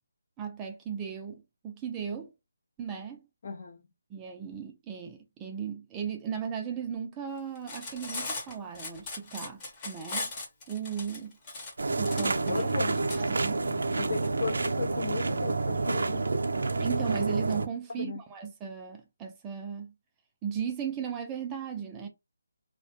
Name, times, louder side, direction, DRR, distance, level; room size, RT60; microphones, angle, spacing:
voice 1, 0.4-2.3 2.8-3.3 4.1-10.3 10.7-11.4 12.0-12.6 13.2-13.6 16.8-19.9 20.4-22.1, right 7 dB, 15° right, 0.3 m, -36 dB
voice 2, 3.4-3.8 12.4-13.1 13.9-16.2 17.9-18.2, left 4 dB, 45° left, 0.5 m, -35 dB
Cutlery silverware, 7.6-13.2, left 3 dB, 20° left, 0.8 m, -38 dB
sound 1, 11.8-17.7, right 3 dB, 75° right, 0.5 m, -29 dB
2.3 x 2.1 x 2.8 m
figure-of-eight pair, 165°, 0 cm